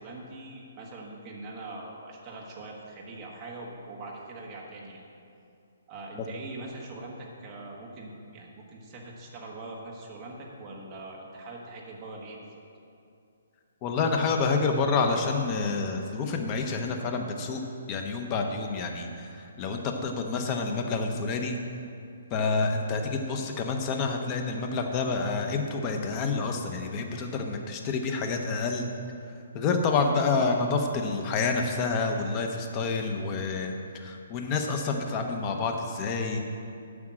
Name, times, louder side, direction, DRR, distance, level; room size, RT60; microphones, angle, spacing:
voice 1, 0.0-5.0 5.9-12.6 23.3-23.5, right 2 dB, 15° right, -2 dB, 1.3 m, -42 dB
voice 2, 13.8-17.6 17.9-21.5 22.3-28.9 29.5-36.4, left 4 dB, 20° left, 4 dB, 0.8 m, -28 dB
9.7 x 6.0 x 7.5 m, 2.5 s
hypercardioid pair, 175°, 0 cm